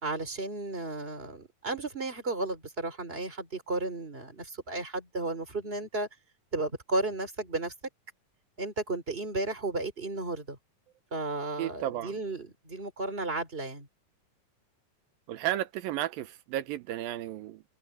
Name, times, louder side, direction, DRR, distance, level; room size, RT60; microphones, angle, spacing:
voice 1, 0.0-6.1 6.5-7.7 8.6-10.6 11.1-13.9, right 2 dB, 15° right, 3.9 m, -33 dB
voice 2, 11.6-12.1 15.3-17.6, right 14 dB, 85° right, 2.7 m, -33 dB
omnidirectional pair, 4.0 m